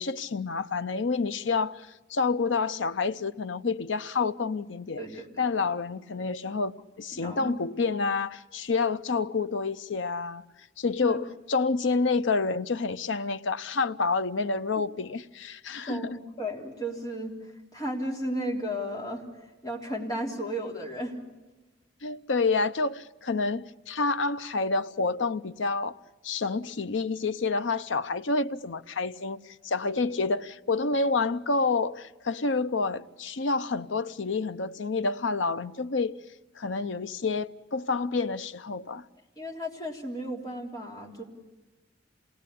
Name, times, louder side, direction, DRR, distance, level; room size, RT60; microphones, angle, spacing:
voice 1, 0.0-5.0 5.4-10.4 10.8-16.2 22.0-26.0 26.2-36.1 36.6-39.0, left 4 dB, 75° left, 0.7 m, -28 dB
voice 2, 5.0-5.5 7.1-7.5 11.0-11.2 15.9-17.4 17.7-19.2 19.6-21.2 39.4-41.2, equal, 20° left, 3.6 m, -34 dB
27.5 x 19.0 x 8.5 m
head